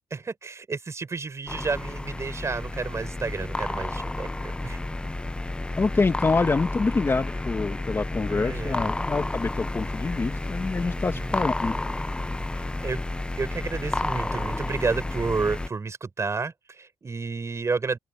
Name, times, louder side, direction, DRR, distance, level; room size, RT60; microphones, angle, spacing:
voice 1, 0.1-4.8 8.3-8.9 11.1-11.4 12.8-13.0 13.4-18.0, right 4 dB, 35° right, 4.9 m, -31 dB
sound 1, 1.5-15.7, left 2 dB, 10° left, 0.5 m, -31 dB
voice 2, 5.8-11.7, left 3 dB, 25° left, 1.3 m, -26 dB
open air
cardioid pair, 105°, 9 cm